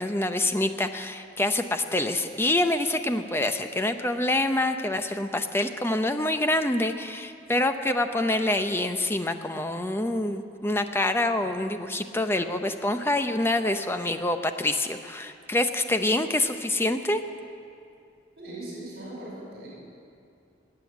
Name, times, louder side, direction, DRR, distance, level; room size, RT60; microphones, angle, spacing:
voice 1, 0.0-17.2, left 1 dB, 15° left, 7 dB, 0.6 m, -26 dB
voice 2, 18.4-19.7, right 1 dB, 60° right, -5 dB, 5.3 m, -39 dB
18.5 x 7.7 x 10.0 m, 2.5 s
head